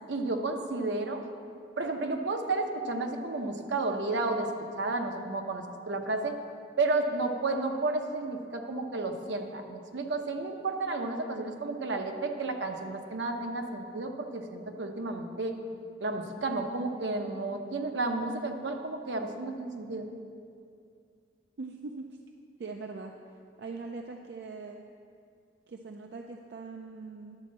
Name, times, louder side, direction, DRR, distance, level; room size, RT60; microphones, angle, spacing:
voice 1, 0.1-1.2 1.8-4.5 4.8-6.4 6.8-15.6 16.0-20.1, right 3 dB, 90° right, 4 dB, 0.8 m, -32 dB
voice 2, 21.6-22.2 22.6-23.2 23.6-24.8 25.7-27.4, right 3 dB, 70° right, 3 dB, 0.4 m, -41 dB
10.5 x 4.2 x 7.3 m, 2.4 s
head